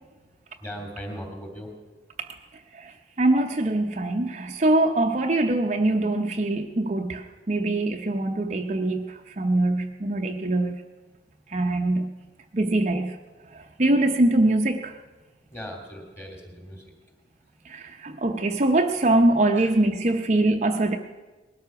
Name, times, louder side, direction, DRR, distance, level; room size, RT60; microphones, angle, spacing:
voice 1, 0.6-1.7 15.5-16.9 19.5-19.7, equal, 15° left, 2 dB, 2.8 m, -38 dB
voice 2, 2.7-10.8 11.5-12.1 12.5-13.1 13.5-14.9 17.7-21.0, right 2 dB, 40° right, 4 dB, 0.7 m, -23 dB
19.5 x 12.5 x 5.9 m, 1.2 s
head